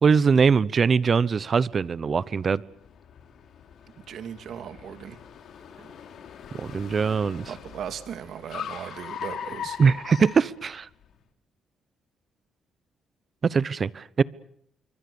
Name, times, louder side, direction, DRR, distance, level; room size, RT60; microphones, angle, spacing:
voice 1, 0.0-2.6 6.6-7.5 9.8-10.9 13.4-14.2, right 5 dB, 40° right, 20 dB, 0.9 m, -22 dB
Car, 1.3-11.1, left 8 dB, 70° left, 3.2 m, -41 dB
voice 2, 4.1-5.2 5.8-5.9 7.5-9.8, right 9 dB, 70° right, 10 dB, 2.4 m, -38 dB
27.0 x 24.0 x 7.1 m, 0.68 s
cardioid pair, 90°, 0 cm